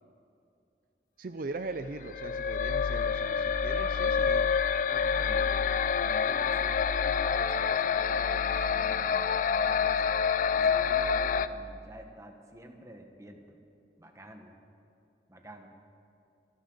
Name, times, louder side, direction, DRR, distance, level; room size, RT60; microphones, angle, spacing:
voice 1, 1.2-4.6, right 3 dB, 55° right, 9 dB, 0.5 m, -40 dB
sound 1, 2.0-11.5, left 6 dB, 45° left, 0.4 m, -27 dB
voice 2, 4.9-5.6 6.0-10.1 10.5-13.6 14.0-14.5 15.3-15.7, right 1 dB, 15° right, 4 dB, 1.3 m, -49 dB
26.0 x 12.0 x 3.9 m, 2.7 s
head